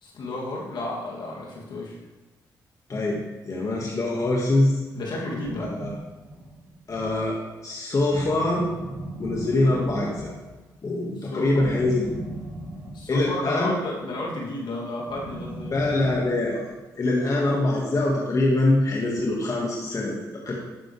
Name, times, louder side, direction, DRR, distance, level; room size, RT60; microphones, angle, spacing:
voice 1, 0.0-2.0 4.9-5.7 11.2-11.6 12.9-15.7, left 2 dB, 70° left, -3 dB, 2.7 m, -32 dB
voice 2, 2.9-4.8 5.6-5.9 6.9-8.7 9.2-10.3 10.8-12.1 13.1-13.8 15.7-16.6 17.0-20.5, left 2 dB, 45° left, -3 dB, 1.9 m, -24 dB
sound 1, 5.0-7.4 8.1-10.7 11.6-13.6 15.1-16.8, right 1 dB, 35° right, 2.9 m, -38 dB
12.0 x 7.6 x 3.4 m, 1.2 s
supercardioid pair, 55°, 8 cm